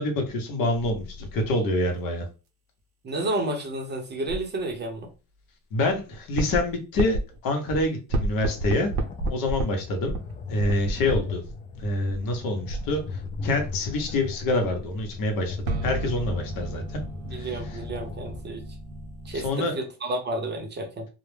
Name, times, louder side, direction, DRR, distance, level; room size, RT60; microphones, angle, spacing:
voice 1, 0.0-2.3 5.7-8.9 9.3-10.2 10.5-11.4 11.8-17.0 17.3-17.6 19.3-19.7, left 2 dB, 60° left, 4 dB, 0.8 m, -26 dB
sound 1, 0.7-1.5 4.3-4.6 5.7-7.4 7.7-7.8 8.1-9.6 10.1-11.5 11.8-19.5, right 2 dB, 70° right, 0.7 m, -32 dB
voice 2, 3.0-5.1 17.2-18.6 19.2-21.1, right 2 dB, 25° right, 2 dB, 0.7 m, -31 dB
sound 2, 8.4-18.4, left 4 dB, 20° left, 0.3 m, -38 dB
2.2 x 2.1 x 3.2 m, 0.31 s
cardioid pair, 115°, 39 cm